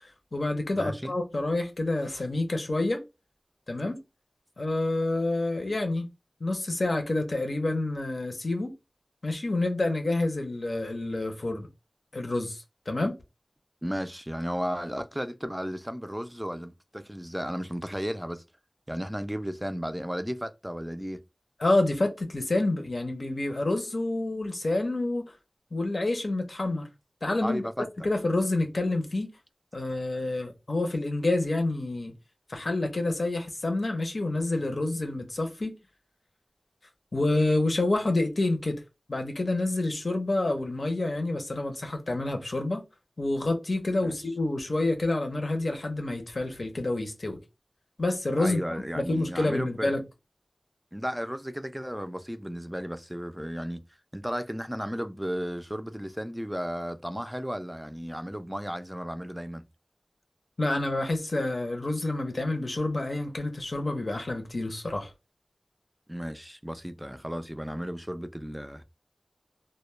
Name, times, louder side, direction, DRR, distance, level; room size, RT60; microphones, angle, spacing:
voice 1, 0.0-3.0 3.7-4.0 4.6-6.1 6.4-8.7 9.2-11.7 12.1-13.1 21.6-25.3 25.7-26.9 27.2-27.6 28.0-29.3 29.7-32.1 32.5-35.7 37.1-38.8 39.1-42.8 43.2-47.4 48.0-48.6 49.0-50.0 60.6-65.1, left 2 dB, 80° left, 0.6 m, -28 dB
voice 2, 0.7-1.2 13.8-18.4 18.9-21.2 27.4-27.9 44.0-44.2 48.4-49.9 50.9-53.8 54.1-59.6 66.1-68.8, equal, 10° right, 0.3 m, -34 dB
2.2 x 2.1 x 3.0 m
wide cardioid pair, 45°, 0 cm